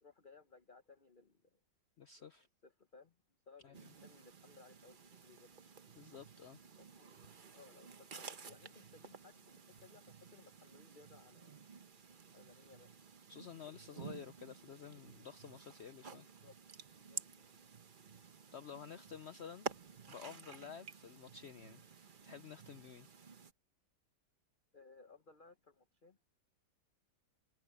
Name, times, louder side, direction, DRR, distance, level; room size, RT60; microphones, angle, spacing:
voice 1, 0.0-1.6 2.2-2.3 2.6-3.1 3.5-5.5 6.8-7.1 7.5-11.6 12.3-12.9 16.2-16.6 17.1-17.5 24.7-26.2, left 4 dB, 35° left, 1.1 m, -62 dB
voice 2, 2.0-2.5 3.6-3.7 6.0-6.6 13.3-16.3 18.5-19.7 20.1-21.8 22.2-23.1, left 7 dB, 75° left, 0.6 m, -51 dB
sound 1, 3.7-23.5, right 5 dB, 35° right, 0.9 m, -52 dB
omnidirectional pair, 1.9 m